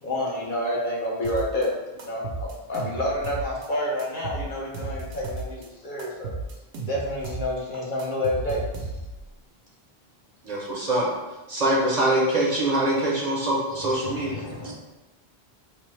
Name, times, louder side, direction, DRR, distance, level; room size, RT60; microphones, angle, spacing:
voice 1, 0.0-1.7 2.0-6.3 6.8-8.6, left 1 dB, 55° left, -4 dB, 0.8 m, -28 dB
sound 1, 1.2-1.7 2.0-3.7 4.0-5.7 6.0-7.5 7.7-9.3, right 3 dB, 85° right, 0.9 m, -34 dB
voice 2, 10.4-11.1 11.5-14.3, right 1 dB, 50° right, -4 dB, 0.6 m, -23 dB
voice 3, 13.7-14.7, left 2 dB, 25° left, -7 dB, 0.5 m, -38 dB
3.3 x 2.0 x 3.1 m, 1.1 s
omnidirectional pair, 1.0 m